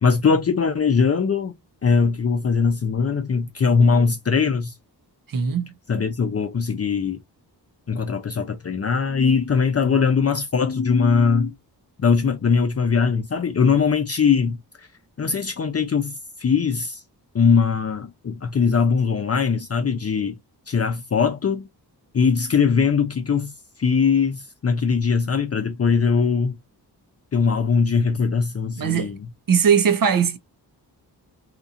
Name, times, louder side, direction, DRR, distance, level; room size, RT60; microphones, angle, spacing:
voice 1, 0.0-4.7 5.9-7.2 7.9-11.5 12.0-14.6 15.2-17.0 17.3-20.3 20.7-21.7 22.1-23.5 23.8-26.6 27.3-29.2, left 5 dB, 35° left, 0.5 m, -21 dB
voice 2, 5.3-5.7 28.8-29.1 29.5-30.4, right 7 dB, 55° right, 0.7 m, -19 dB
2.9 x 2.5 x 2.5 m
cardioid pair, 75°, 40 cm